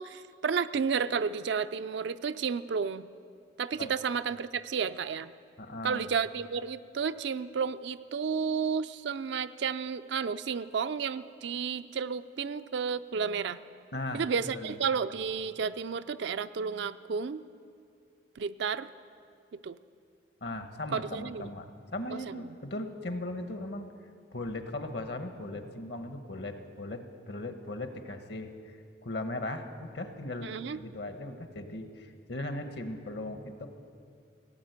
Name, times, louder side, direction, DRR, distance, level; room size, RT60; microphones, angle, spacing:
voice 1, 0.0-3.1 3.6-5.3 5.8-13.6 14.1-17.4 18.4-18.9 19.5-19.8 20.9-21.4 22.1-22.2 30.4-30.8, right 6 dB, 65° right, 12 dB, 0.4 m, -32 dB
voice 2, 5.6-6.1 13.9-14.2 14.5-14.8 20.4-23.9 24.3-28.8 29.0-30.5 30.7-33.7, left 2 dB, 60° left, 7 dB, 1.1 m, -38 dB
17.5 x 9.2 x 8.1 m, 2.4 s
head